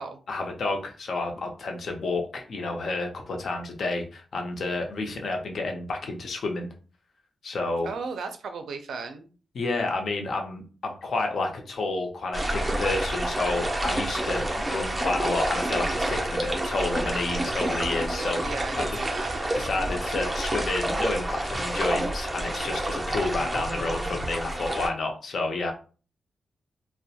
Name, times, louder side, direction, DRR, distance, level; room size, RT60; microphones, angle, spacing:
voice 1, 0.3-6.7 7.4-7.9 9.5-18.4 18.7-19.0 19.6-25.7, left 3 dB, 55° left, 3 dB, 0.5 m, -30 dB
voice 2, 7.8-9.3 18.1-19.4, right 4 dB, 85° right, 7 dB, 0.4 m, -35 dB
sound 1, 12.3-24.9, right 1 dB, 15° right, 0.4 m, -28 dB
2.3 x 2.0 x 2.7 m, 0.37 s
wide cardioid pair, 170°, 0 cm